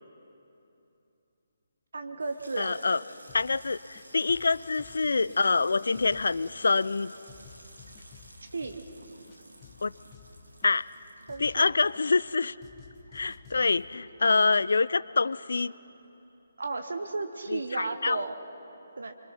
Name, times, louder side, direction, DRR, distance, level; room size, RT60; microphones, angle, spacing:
voice 1, 1.9-2.8 8.5-8.8 11.3-11.7 16.6-18.3 19.0-19.1, right 3 dB, 60° right, 8 dB, 1.2 m, -34 dB
Water tap faucet / Sink (filling or washing), 2.0-14.9 15.2-15.8 16.1-16.4, right 1 dB, 80° right, 2.4 m, -54 dB
voice 2, 2.6-3.0 3.3-7.1 9.8-9.9 10.6-10.8 11.4-12.6 13.1-15.7 17.5-18.2, left 4 dB, 60° left, 19 dB, 0.4 m, -26 dB
sound 1, 3.3-3.6 3.9-5.7 5.9-7.0 7.3-9.0 9.3-11.0 11.3-12.3 12.6-13.8, left 6 dB, 20° left, 1.5 m, -53 dB
26.5 x 24.5 x 5.8 m, 2.9 s
figure-of-eight pair, 140°, 0 cm